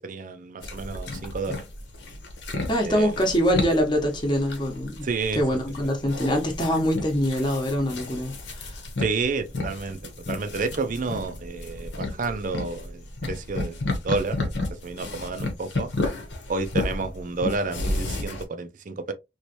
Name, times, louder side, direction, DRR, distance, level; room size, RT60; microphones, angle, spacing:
voice 1, 0.0-1.6 2.8-3.1 5.0-5.4 9.0-10.0 10.3-15.9 16.5-19.1, right 4 dB, 45° right, 0.5 m, -30 dB
sound 1, 0.6-18.4, left 2 dB, 70° left, 1.0 m, -32 dB
voice 2, 2.7-5.1 5.3-8.8, equal, 25° left, 1.0 m, -24 dB
3.1 x 3.1 x 2.9 m
head